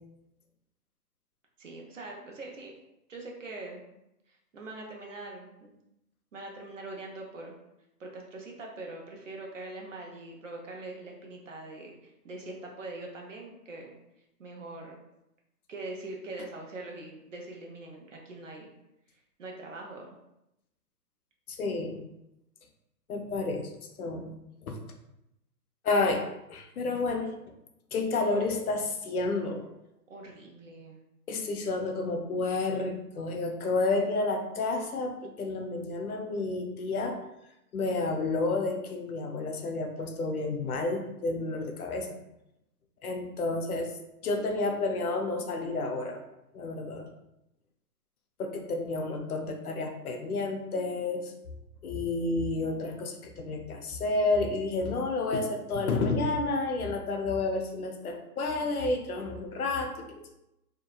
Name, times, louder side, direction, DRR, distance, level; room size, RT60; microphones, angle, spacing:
voice 1, 1.6-2.8 3.1-3.8 4.3-5.7 6.3-7.5 8.0-13.9 14.4-15.0 15.7-18.7 19.4-20.2 30.1-31.0, right 2 dB, 50° right, 0 dB, 0.5 m, -42 dB
voice 2, 21.5-22.0 23.1-23.7 24.0-24.8 25.8-26.2 26.5-27.3 27.9-29.6 31.3-37.2 37.7-42.2 43.0-43.9 44.2-46.2 46.5-47.1 48.4-51.3 51.8-60.4, left 3 dB, 65° left, 3 dB, 0.5 m, -30 dB
2.7 x 2.1 x 2.3 m, 0.87 s
hypercardioid pair, 165°, 49 cm